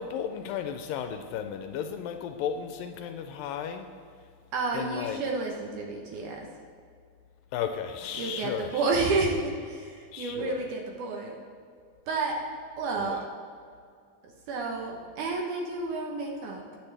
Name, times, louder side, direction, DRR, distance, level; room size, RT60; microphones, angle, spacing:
voice 1, 0.0-3.9 4.7-5.2 7.5-8.8 10.1-10.7 13.0-13.2, left 8 dB, 80° left, 7 dB, 2.2 m, -34 dB
voice 2, 4.5-6.5 8.2-11.4 12.1-12.4 12.8-13.2 14.2-16.6, right 3 dB, 65° right, 0 dB, 2.2 m, -30 dB
19.5 x 8.0 x 3.4 m, 2.2 s
omnidirectional pair, 4.2 m